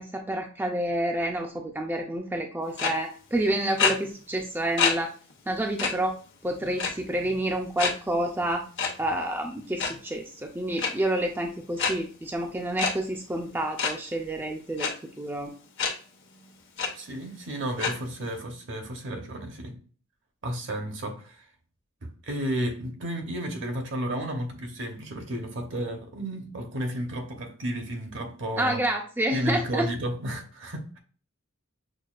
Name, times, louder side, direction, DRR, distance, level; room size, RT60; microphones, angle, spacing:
voice 1, 0.0-5.1 5.5-6.2 6.4-8.6 9.0-14.9 15.2-15.5 28.6-29.9, right 1 dB, 10° right, 0.4 m, -29 dB
sound 1, 2.8-2.9 3.8-3.9 4.8-4.9 5.3-5.4 5.8-5.9 6.8-7.1 7.8-7.9 8.8-8.9 9.6-9.9 10.8-10.9 11.8-11.9 12.8-12.9 13.8-13.9 14.8-14.9 15.8-15.9 16.4-16.5 16.8-16.9 17.8-17.9, left 5 dB, 65° left, 0.9 m, -25 dB
voice 2, 16.9-19.8 20.4-21.4 22.0-28.8 29.3-31.0, right 1 dB, 65° right, 0.9 m, -32 dB
6.3 x 2.3 x 2.4 m
head